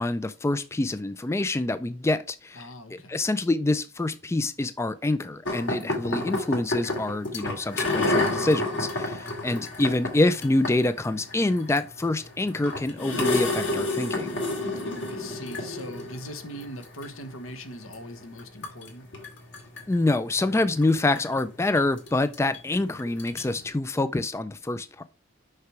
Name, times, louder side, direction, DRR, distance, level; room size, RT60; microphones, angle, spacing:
voice 1, 0.0-14.3 19.9-25.0, left 2 dB, 15° left, 0.3 m, -26 dB
voice 2, 2.5-3.2 5.7-6.0 9.2-9.5 15.1-19.0, equal, 85° left, 1.3 m, -41 dB
sound 1, 5.5-23.7, left 2 dB, 65° left, 2.3 m, -31 dB
6.6 x 5.8 x 4.6 m
head